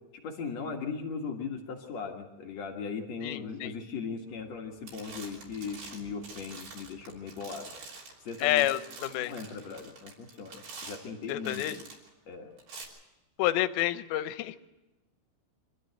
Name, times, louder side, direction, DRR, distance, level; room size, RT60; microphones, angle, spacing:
voice 1, 0.2-7.7 8.3-8.7 9.0-11.6 12.3-12.5, left 5 dB, 55° left, 2 dB, 2.0 m, -38 dB
voice 2, 3.2-3.7 8.4-9.3 11.3-11.8 13.4-14.6, left 15 dB, 80° left, 12 dB, 2.9 m, -29 dB
sound 1, 4.4-4.6 4.9-12.1 12.6-12.8, right 4 dB, 65° right, 5.2 m, -47 dB
25.0 x 13.5 x 7.9 m, 1.1 s
omnidirectional pair, 5.2 m